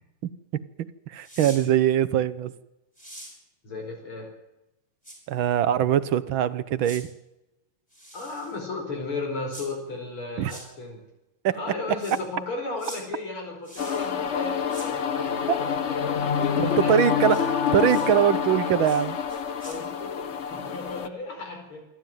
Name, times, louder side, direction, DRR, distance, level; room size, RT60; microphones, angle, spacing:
voice 1, 1.1-2.5 5.3-7.1 10.4-10.5 11.4-11.6 15.5-15.6 16.6-19.2, right 10 dB, 70° right, 15 dB, 1.7 m, -22 dB
sound 1, 1.2-1.6 3.0-3.3 5.0-5.2 6.8-7.0 7.9-8.6 9.5-9.7 10.4-10.6 12.0-12.2 12.8-13.0 13.6-14.1 14.7-14.9 17.3-17.4 17.9-18.1 18.8-19.0 19.3-19.8, right 1 dB, 15° left, 7.3 m, -43 dB
voice 2, 3.6-4.3 8.1-11.0 11.5-15.8 16.0-17.3 19.4-21.8, left 3 dB, 90° left, 2 dB, 5.7 m, -35 dB
sound 2, 13.8-21.1, left 7 dB, 45° left, 0.9 m, -27 dB
27.0 x 12.5 x 9.3 m, 0.95 s
omnidirectional pair, 2.3 m